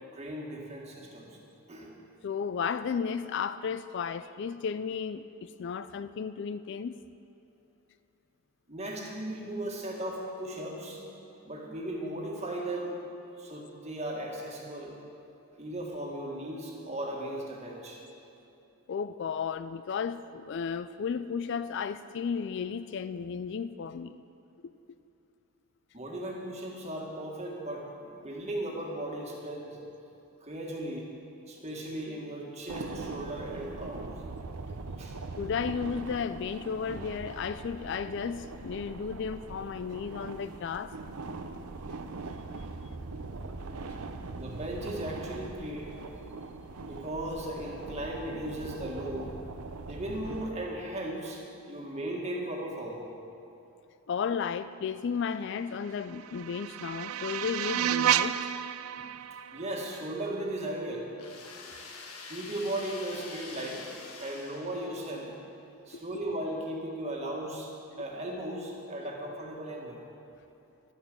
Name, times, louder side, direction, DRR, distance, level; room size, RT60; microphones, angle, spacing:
voice 1, 0.0-1.4 1.7-1.9 8.7-11.1 11.4-13.0 13.4-15.0 15.6-18.1 25.9-29.8 30.4-31.1 31.5-34.1 35.0-35.2 44.4-46.0 46.8-49.4 49.9-53.1 59.0-59.1 59.5-61.1 62.3-63.9 64.2-65.4 65.9-67.7 68.0-70.0, right 1 dB, 30° right, 1.8 m, -37 dB
voice 2, 2.2-7.0 18.9-24.2 35.4-40.9 54.1-58.4 65.9-66.0, left 6 dB, 55° left, 0.3 m, -34 dB
sound 1, 32.7-50.5, right 3 dB, 90° right, 0.7 m, -41 dB
sound 2, 55.8-60.8, right 10 dB, 70° right, 0.3 m, -32 dB
sound 3, 61.2-65.3, left 4 dB, 85° left, 1.5 m, -46 dB
12.0 x 9.7 x 6.8 m
head